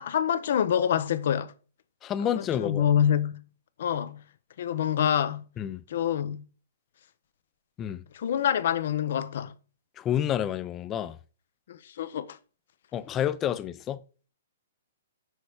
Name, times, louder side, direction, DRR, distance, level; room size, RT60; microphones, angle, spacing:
voice 1, 0.0-1.5 2.4-3.4 3.8-4.2 4.6-5.4 5.9-6.4 8.1-9.5 11.7-12.4, left 9 dB, 65° left, 0.7 m, -26 dB
voice 2, 2.0-2.8 5.6-5.8 7.8-8.0 10.0-11.2 12.9-14.0, left 10 dB, 25° left, 0.5 m, -29 dB
6.4 x 4.5 x 4.9 m
hypercardioid pair, 135°, 0 cm